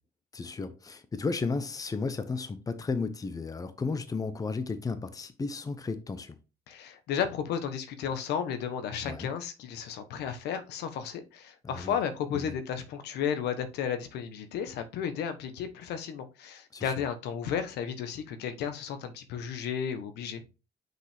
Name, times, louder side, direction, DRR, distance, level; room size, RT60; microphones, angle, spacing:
voice 1, 0.3-6.4 9.0-9.3 11.6-12.0 12.3-12.6 16.7-16.9, left 4 dB, 20° left, 0.8 m, -34 dB
voice 2, 6.7-20.4, left 8 dB, 80° left, 1.1 m, -33 dB
6.2 x 5.2 x 3.5 m
cardioid pair, 110°, 17 cm